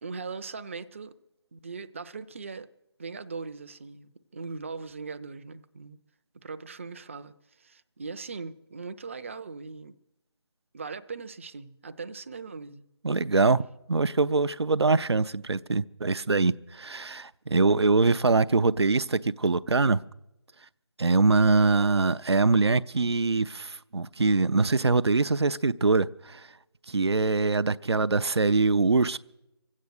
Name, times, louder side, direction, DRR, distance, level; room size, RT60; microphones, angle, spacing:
voice 1, 0.0-1.1 1.5-2.7 3.0-6.0 6.4-9.9 10.7-12.9, right 4 dB, 30° right, 0.5 m, -40 dB
voice 2, 13.0-20.0 21.0-26.5 26.9-29.2, right 3 dB, 75° right, 0.5 m, -23 dB
24.5 x 8.3 x 6.6 m
figure-of-eight pair, 155°, 14 cm